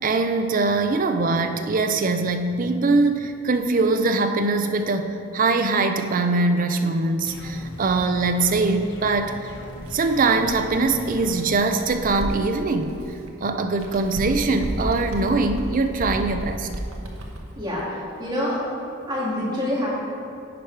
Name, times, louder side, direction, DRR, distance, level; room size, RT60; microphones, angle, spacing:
voice 1, 0.0-9.4 9.9-12.9 13.4-16.7, right 3 dB, 40° right, 7 dB, 0.4 m, -22 dB
sound 1, 7.3-11.6, left 1 dB, 55° left, 0.8 m, -39 dB
Bird, 9.8-13.3 13.7-17.6, right 1 dB, 85° right, 0.9 m, -34 dB
voice 2, 17.6-18.6 19.1-19.9, left 1 dB, 20° right, -7 dB, 2.0 m, -26 dB
10.0 x 4.7 x 4.6 m, 2.6 s
head